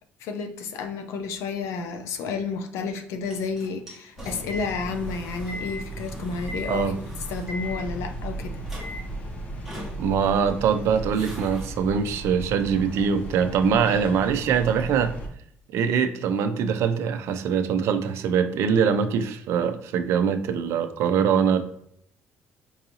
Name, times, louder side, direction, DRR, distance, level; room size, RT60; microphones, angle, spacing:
voice 1, 0.2-6.9 7.3-8.6, left 4 dB, 75° left, 7 dB, 0.5 m, -31 dB
sound 1, 3.2-8.3 8.6-9.3 9.7-10.4 10.8-11.7 12.6-12.7, left 1 dB, 5° right, 1.0 m, -40 dB
sound 2, 4.2-15.3, right 1 dB, 30° left, 0.6 m, -36 dB
voice 2, 10.0-15.1 15.7-21.6, right 7 dB, 65° right, 8 dB, 0.4 m, -23 dB
4.6 x 2.6 x 2.8 m, 0.68 s
cardioid pair, 170°, 5 cm